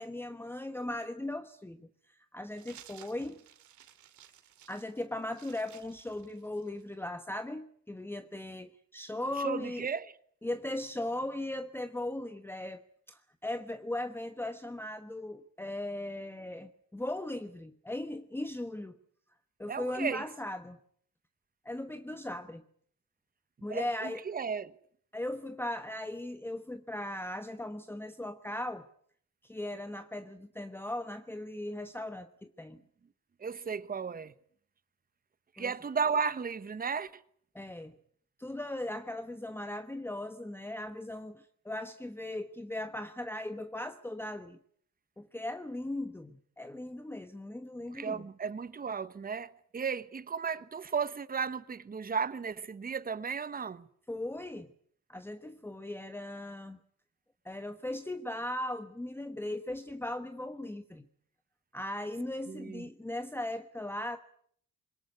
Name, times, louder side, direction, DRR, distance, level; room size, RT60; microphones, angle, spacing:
voice 1, 0.0-3.4 4.7-9.9 10.4-12.8 13.1-19.0 19.6-20.8 21.6-22.6 23.6-24.2 25.1-28.9 29.4-32.8 35.6-35.7 37.5-38.0 38.4-44.6 45.2-48.3 54.1-54.7 55.1-56.8 57.4-61.1 61.7-64.2, left 1 dB, 5° left, 1.1 m, -38 dB
sound 1, 2.5-6.9, right 10 dB, 75° right, 2.3 m, -56 dB
voice 2, 9.4-10.1 19.7-20.3 23.7-24.7 33.4-34.3 35.6-37.2 47.9-53.9 62.5-62.8, right 6 dB, 30° right, 1.1 m, -34 dB
22.0 x 18.5 x 9.6 m
cardioid pair, 90°, 30 cm